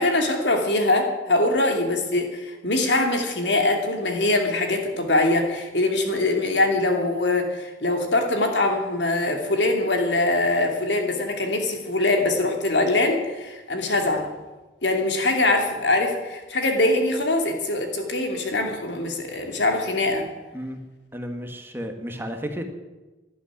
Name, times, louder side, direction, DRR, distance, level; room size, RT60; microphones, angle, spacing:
voice 1, 0.0-14.3 14.8-20.3, left 2 dB, 80° left, 3 dB, 2.8 m, -23 dB
voice 2, 21.1-22.6, equal, 10° right, 5 dB, 1.5 m, -32 dB
12.0 x 11.5 x 9.9 m, 1.2 s
head